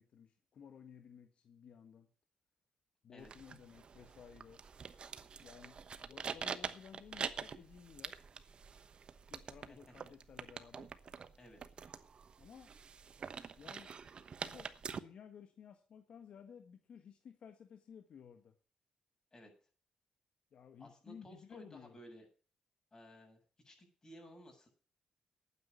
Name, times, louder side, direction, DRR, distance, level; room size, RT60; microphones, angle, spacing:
voice 1, 0.0-2.1 3.0-4.6 5.4-8.2 9.3-10.9 12.4-12.7 13.6-13.9 14.4-18.5 20.5-22.0, left 7 dB, 70° left, 6 dB, 1.5 m, -56 dB
drinking woman, 3.2-15.0, right 6 dB, 55° right, 1.1 m, -46 dB
voice 2, 20.8-22.3 22.9-23.4 23.6-24.7, equal, 30° left, 3 dB, 7.4 m, -56 dB
11.5 x 9.4 x 6.8 m, 0.39 s
cardioid pair, 75°, 2 cm